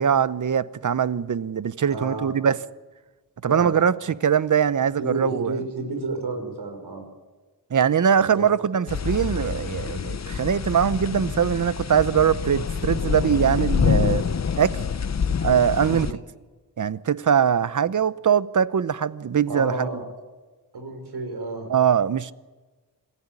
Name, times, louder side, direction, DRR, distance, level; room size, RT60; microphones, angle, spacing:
voice 1, 0.0-2.6 3.4-5.6 7.7-14.2 14.6-14.8 15.4-16.1 16.8-19.9 21.7-22.3, right 8 dB, 50° right, 0.8 m, -22 dB
voice 2, 1.9-2.3 3.5-3.7 4.8-7.0 8.2-8.5 15.8-16.1 19.5-20.1 20.7-21.7, right 2 dB, 75° right, 5.7 m, -31 dB
sound 1, 8.9-16.1, left 6 dB, 40° left, 0.8 m, -26 dB
27.0 x 15.0 x 9.7 m
wide cardioid pair, 120°, 40 cm